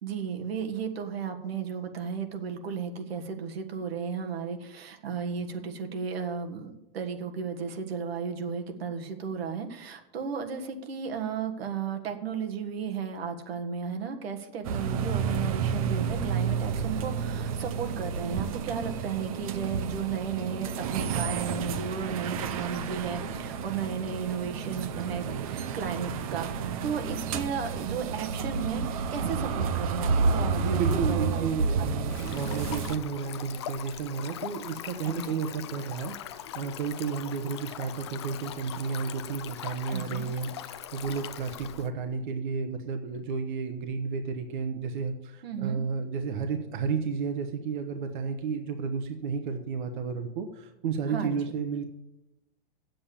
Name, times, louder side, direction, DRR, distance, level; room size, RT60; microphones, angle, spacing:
voice 1, 0.0-32.4 35.0-35.4 39.9-40.3 45.4-45.8 51.1-51.4, right 6 dB, 90° right, 5 dB, 1.7 m, -34 dB
sound 1, 14.6-33.0, right 5 dB, 35° right, 0.6 m, -30 dB
voice 2, 30.5-51.8, right 5 dB, 55° right, 7 dB, 1.0 m, -32 dB
Stream, 32.1-41.9, left 11 dB, 30° left, 0.4 m, -41 dB
8.6 x 7.9 x 8.6 m, 0.95 s
supercardioid pair, 180°, 30 cm